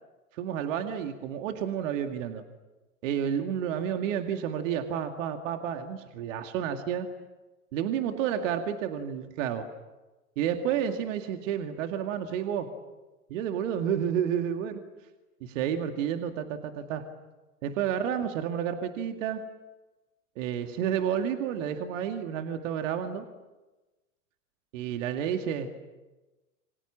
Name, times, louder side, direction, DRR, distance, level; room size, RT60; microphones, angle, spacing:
voice 1, 0.3-2.4 3.0-7.1 7.7-9.7 10.4-12.7 13.3-14.8 15.4-17.0 17.6-19.4 20.4-23.3 24.7-25.7, right 9 dB, 60° right, 6 dB, 2.3 m, -30 dB
28.5 x 26.0 x 7.5 m, 1.1 s
hypercardioid pair, 90°, 43 cm